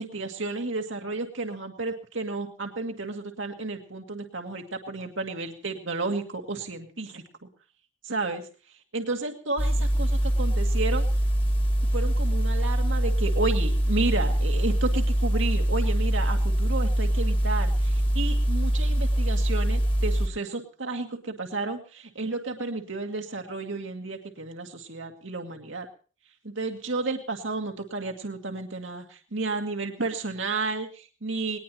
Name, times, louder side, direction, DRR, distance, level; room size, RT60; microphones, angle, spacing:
voice 1, 0.0-7.2 8.0-8.4 8.9-11.1 11.9-25.9 26.4-31.6, right 3 dB, 80° right, 3 dB, 2.0 m, -32 dB
sound 1, 9.6-20.3, right 1 dB, 25° left, 1.6 m, -24 dB
20.5 x 19.5 x 3.0 m, 0.38 s
head